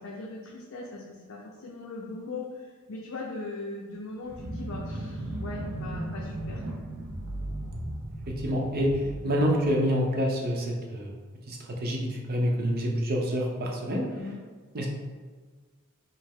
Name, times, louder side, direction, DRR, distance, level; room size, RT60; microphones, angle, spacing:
voice 1, 0.0-6.8 14.1-14.4, left 3 dB, 65° left, -3 dB, 0.5 m, -39 dB
sound 1, 4.2-10.2, right 1 dB, 90° right, 0.6 m, -36 dB
voice 2, 8.3-11.1 11.5-14.1 14.7-14.9, equal, 45° right, 0 dB, 0.7 m, -27 dB
5.2 x 2.0 x 3.5 m, 1.5 s
head